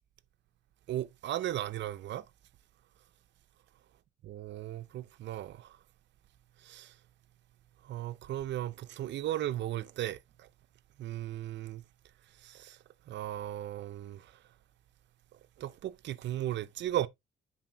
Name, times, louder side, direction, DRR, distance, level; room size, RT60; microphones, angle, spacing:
voice 1, 0.9-2.3 4.2-5.8 6.6-6.9 7.8-10.5 11.0-11.8 12.4-12.8 13.1-14.4 15.3-17.1, right 13 dB, 65° right, 0.5 m, -36 dB
10.0 x 4.1 x 2.6 m
cardioid pair, 90°, 20 cm